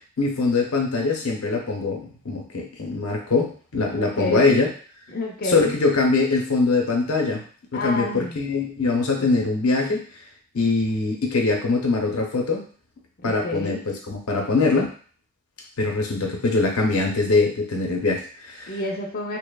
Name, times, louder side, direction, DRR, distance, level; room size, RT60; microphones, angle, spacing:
voice 1, 0.2-4.7 5.4-7.4 7.7-10.0 10.5-12.6 13.2-14.9 15.8-18.8, left 3 dB, 85° left, 1 dB, 0.6 m, -22 dB
voice 2, 3.9-4.6 5.1-5.7 7.7-8.4 9.2-9.3 13.2-13.8 18.7-19.4, left 1 dB, 45° left, -1 dB, 0.4 m, -29 dB
2.9 x 2.0 x 2.2 m, 0.41 s
head